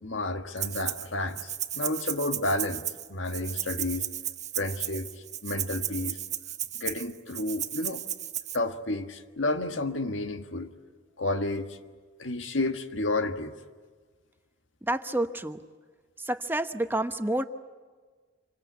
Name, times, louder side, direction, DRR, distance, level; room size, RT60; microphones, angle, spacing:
voice 1, 0.0-2.8 3.1-4.1 4.6-5.1 5.4-6.2 6.8-8.0 8.5-10.7 11.2-11.8 12.2-13.5, left 2 dB, 90° left, 7 dB, 1.6 m, -31 dB
Rattle (instrument), 0.6-1.1 1.4-8.6, right 11 dB, 40° right, 1.1 m, -34 dB
voice 2, 14.8-15.6 16.2-17.4, right 1 dB, 10° right, 8 dB, 0.9 m, -29 dB
27.0 x 25.0 x 8.2 m, 1.5 s
head